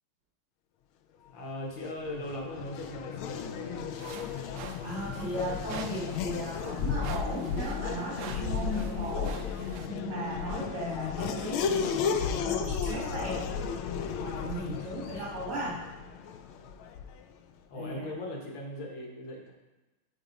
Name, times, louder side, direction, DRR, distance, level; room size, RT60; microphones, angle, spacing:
voice 1, 1.3-4.1 14.9-15.2 17.7-19.5, left 1 dB, 65° left, -1 dB, 2.2 m, -39 dB
Race car auto racing / Accelerating revving vroom, 1.7-17.3, left 6 dB, 90° left, 1.5 m, -34 dB
sound 1, 4.0-9.9, right 7 dB, 70° right, 1.0 m, -46 dB
voice 2, 4.8-13.4 14.2-15.8 17.7-18.1, equal, 85° right, -5 dB, 3.3 m, -36 dB
13.0 x 4.4 x 4.0 m, 1.1 s
omnidirectional pair, 2.2 m